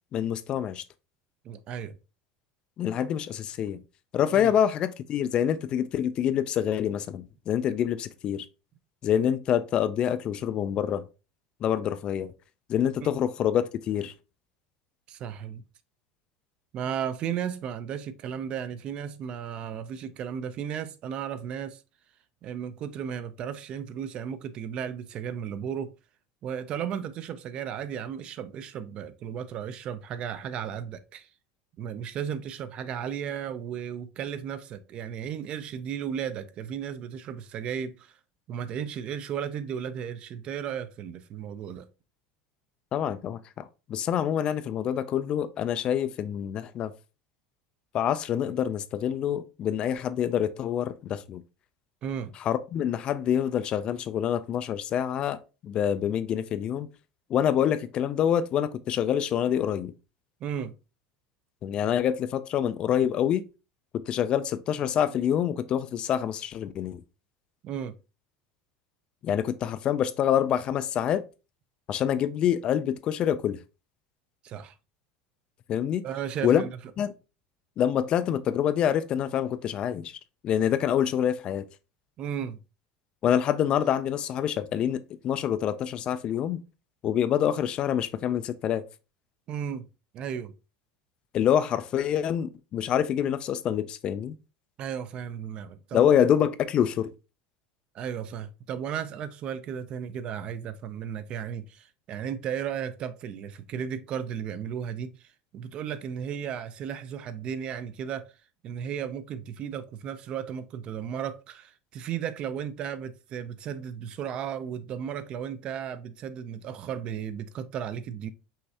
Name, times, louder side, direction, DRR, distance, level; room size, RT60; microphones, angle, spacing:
voice 1, 0.1-0.8 2.8-3.8 4.1-8.5 9.0-11.0 11.6-12.3 12.7-14.1 42.9-46.9 47.9-51.4 52.4-56.9 57.3-59.9 61.6-63.4 63.9-67.0 69.2-71.2 71.9-73.6 75.7-76.0 76.4-76.6 77.0-77.1 77.8-80.2 80.4-81.7 83.2-86.6 87.0-88.8 91.3-94.4 95.9-97.1, left 9 dB, 35° left, 0.3 m, -26 dB
voice 2, 1.4-2.0 4.3-4.5 15.1-15.6 16.7-21.8 22.4-25.9 26.4-31.3 31.8-38.2 38.5-41.9 52.0-52.4 60.4-60.7 67.6-67.9 74.4-74.7 76.0-76.7 82.2-82.6 89.5-89.9 90.1-90.5 94.8-96.2 97.9-108.2 108.6-118.3, right 8 dB, 35° right, 0.4 m, -35 dB
5.5 x 3.1 x 2.7 m
supercardioid pair, 150°, 3 cm